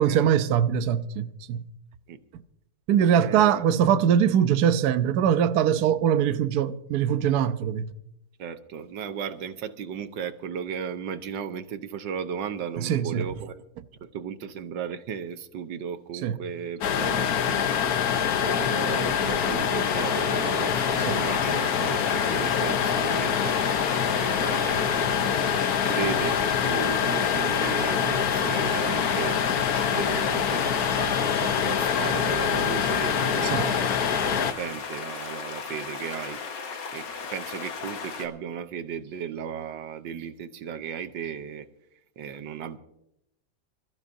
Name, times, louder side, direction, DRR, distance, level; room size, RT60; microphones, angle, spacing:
voice 1, 0.0-1.6 2.9-7.9 12.8-13.3 16.2-16.4 21.1-21.2 33.4-33.6, right 9 dB, 65° right, 1.2 m, -22 dB
voice 2, 3.0-3.7 8.4-13.6 14.0-17.7 18.4-41.7 42.2-42.8, right 8 dB, 85° right, 1.6 m, -36 dB
sound 1, 16.8-34.5, left 8 dB, 60° left, 1.3 m, -25 dB
sound 2, 20.7-38.3, left 5 dB, 80° left, 2.1 m, -36 dB
26.5 x 14.5 x 2.7 m
omnidirectional pair, 1.9 m